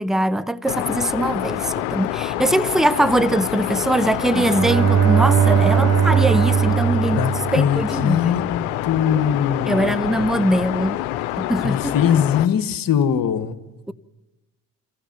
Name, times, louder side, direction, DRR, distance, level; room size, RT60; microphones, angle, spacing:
voice 1, 0.0-7.3 7.5-8.4 9.7-11.0 11.4-12.0, right 1 dB, ahead, 0.7 m, -21 dB
sound 1, 0.7-12.5, left 14 dB, 75° left, 1.0 m, -27 dB
Bowed string instrument, 4.2-8.2, right 9 dB, 35° right, 0.6 m, -19 dB
voice 2, 5.5-5.9 7.1-10.2 11.6-13.6, left 8 dB, 50° left, 1.6 m, -22 dB
28.0 x 15.5 x 6.1 m
hypercardioid pair, 55°, 43 cm